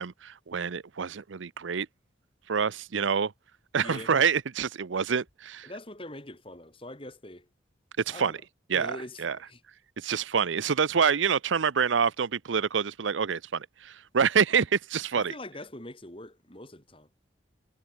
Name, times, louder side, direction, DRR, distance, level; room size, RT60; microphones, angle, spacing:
voice 1, 0.0-1.9 2.5-3.3 3.7-5.7 8.1-8.4 8.7-9.4 10.0-15.3, right 6 dB, 80° right, 0.6 m, -27 dB
voice 2, 3.8-4.1 5.6-7.5 8.1-8.4 8.7-9.6 15.1-17.1, left 1 dB, 30° left, 4.0 m, -43 dB
head